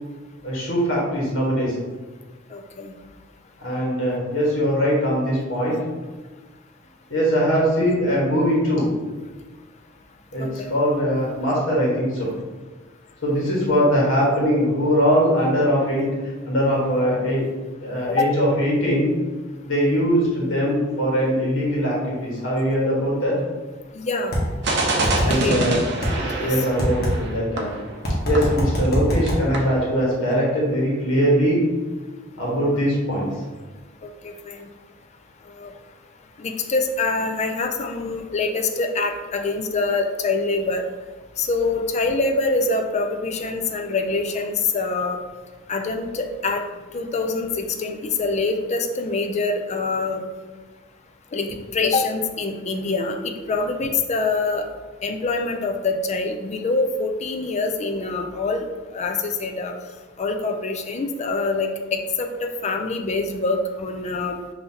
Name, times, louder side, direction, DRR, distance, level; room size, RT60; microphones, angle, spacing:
voice 1, 0.4-1.8 3.6-5.8 7.1-8.9 10.3-12.3 13.2-17.5 17.8-19.1 19.6-23.4 25.2-25.7 26.4-27.8 28.3-31.7 32.4-33.3, equal, 80° left, -5 dB, 1.4 m, -21 dB
voice 2, 2.5-2.9 10.6-10.7 18.1-18.3 23.9-24.4 25.3-25.8 26.4-26.6 34.0-34.6 35.5-35.7 36.4-40.8 41.4-45.2 45.7-46.6 46.9-50.2 51.3-54.6 55.0-58.7 58.9-59.7 60.2-64.4, left 3 dB, 35° left, 4 dB, 0.4 m, -25 dB
sound 1, 24.3-24.4 25.0-25.3 26.0-26.1 26.8-27.1 28.0-29.4, equal, 55° left, 1.1 m, -24 dB
sound 2, 24.6-29.0 29.3-29.4 29.5-29.8, right 2 dB, 60° right, 0.7 m, -26 dB
5.6 x 2.8 x 2.8 m, 1.3 s
head